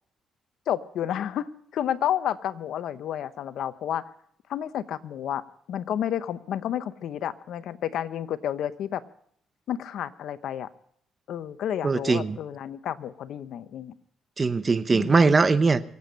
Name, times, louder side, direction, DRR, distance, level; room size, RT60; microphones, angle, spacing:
voice 1, 0.7-4.0 4.5-5.4 5.7-9.0 9.7-10.7 11.3-13.9 14.9-15.4, left 10 dB, 75° left, 13 dB, 0.8 m, -31 dB
voice 2, 11.8-12.4 14.4-15.9, right 4 dB, 30° right, 13 dB, 0.9 m, -21 dB
24.5 x 8.6 x 5.3 m, 0.65 s
cardioid pair, 90°, 0 cm